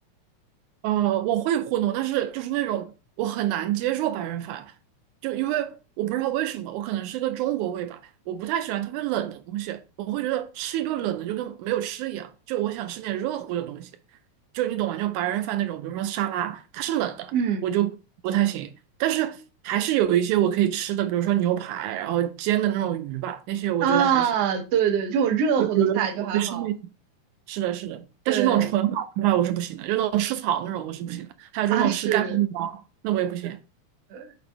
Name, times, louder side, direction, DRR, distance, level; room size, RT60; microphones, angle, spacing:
voice 1, 0.8-2.9 3.2-4.7 5.2-8.0 8.3-13.9 14.5-17.3 17.6-17.9 18.2-18.7 19.0-19.4 19.6-24.3 25.6-26.8 27.5-33.6, right 12 dB, 85° right, 2.0 m, -26 dB
voice 2, 17.3-17.6 23.8-26.7 28.3-28.7 31.7-32.4 34.1-34.3, right 7 dB, 65° right, 1.7 m, -24 dB
8.3 x 4.1 x 3.3 m
omnidirectional pair, 3.4 m